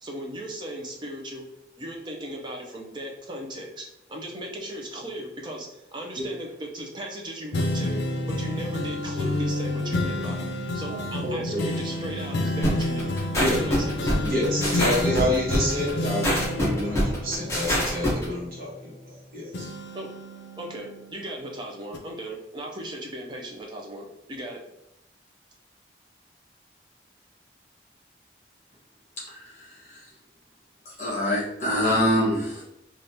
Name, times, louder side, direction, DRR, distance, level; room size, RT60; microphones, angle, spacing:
voice 1, 0.0-1.4 1.8-10.5 10.7-13.1 13.5-14.1 19.9-20.1 20.6-24.6, right 1 dB, 25° right, 0 dB, 0.5 m, -37 dB
sound 1, 7.5-19.2 19.5-21.4 21.9-22.0, left 1 dB, 75° left, 0.5 m, -30 dB
voice 2, 11.2-11.7 13.4-13.5 14.2-18.9 19.3-19.7, left 1 dB, 50° right, -5 dB, 1.2 m, -28 dB
sound 2, 12.6-18.2, equal, 15° left, 0.7 m, -25 dB
voice 3, 31.0-32.6, equal, 40° left, -5 dB, 1.2 m, -24 dB
3.4 x 2.4 x 2.7 m, 0.86 s
head